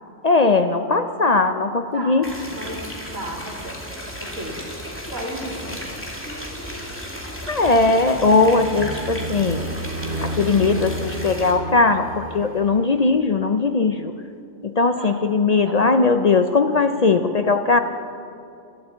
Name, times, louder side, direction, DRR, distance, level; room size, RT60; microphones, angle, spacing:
voice 1, 0.2-2.3 7.5-9.6 10.2-14.1 14.6-17.8, left 3 dB, 60° left, 7 dB, 0.4 m, -19 dB
sound 1, 2.2-11.5, equal, 10° left, 2.2 m, -34 dB
voice 2, 2.5-3.8 4.2-4.6 5.0-5.7 14.9-15.1 15.6-15.9, right 1 dB, 80° right, -1 dB, 2.8 m, -34 dB
sound 2, 7.5-13.2, right 2 dB, 45° right, 0.9 m, -33 dB
13.0 x 11.5 x 8.1 m, 2.5 s
omnidirectional pair, 1.4 m